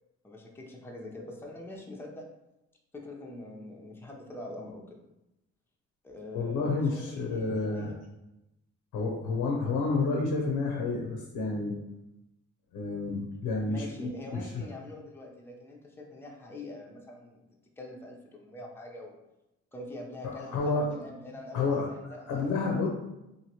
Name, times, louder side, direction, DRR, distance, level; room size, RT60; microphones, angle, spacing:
voice 1, 0.2-2.3 2.9-5.0 6.0-7.9 13.6-17.4 17.8-19.2 19.7-22.9, left 1 dB, 10° left, 0 dB, 0.5 m, -44 dB
voice 2, 6.3-7.9 8.9-11.8 12.7-14.6 20.5-21.0 21.5-21.9 22.3-22.9, left 3 dB, 90° left, 0 dB, 0.6 m, -30 dB
2.8 x 2.6 x 2.8 m, 0.91 s
cardioid pair, 90°, 30 cm